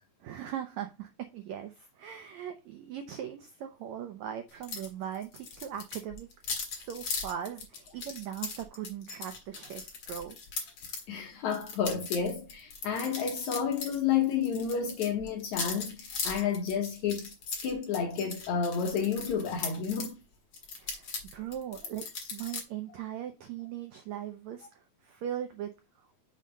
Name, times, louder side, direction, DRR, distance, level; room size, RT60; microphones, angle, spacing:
voice 1, 0.2-6.3 6.7-10.4 20.8-22.0 22.3-25.7, right 10 dB, 85° right, 1.6 m, -39 dB
sound 1, 4.6-4.9 5.1-11.0 11.5-14.0 14.2-20.1 20.5-22.6, left 5 dB, 45° left, 2.0 m, -38 dB
voice 2, 11.1-17.3 17.6-20.2, left 7 dB, 70° left, 1.9 m, -30 dB
7.3 x 3.8 x 5.4 m
omnidirectional pair, 4.2 m